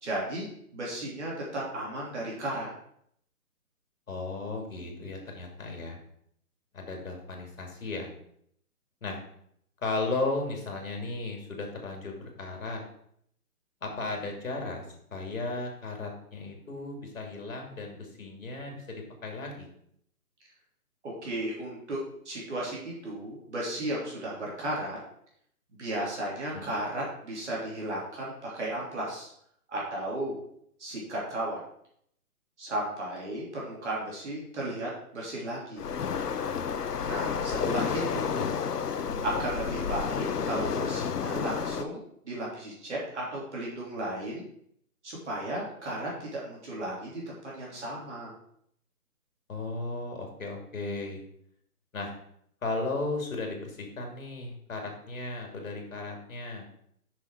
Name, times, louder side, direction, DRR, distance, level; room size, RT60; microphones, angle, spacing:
voice 1, 0.0-2.7 21.0-25.0 25.8-29.3 29.7-30.4 30.8-31.6 32.6-35.9 37.0-38.5 39.2-44.4 45.0-48.3, right 1 dB, 50° right, -4 dB, 2.9 m, -34 dB
voice 2, 4.1-6.0 6.7-8.1 9.0-9.2 9.8-12.8 13.8-14.8 15.1-19.7 26.5-26.8 37.5-38.2 49.5-51.2 51.9-52.1 52.6-56.7, left 3 dB, 60° left, 2 dB, 2.9 m, -35 dB
Waves surf, 35.8-41.8, left 6 dB, 90° left, 0.9 m, -31 dB
7.9 x 6.2 x 4.7 m, 0.69 s
hypercardioid pair, 170°, 46 cm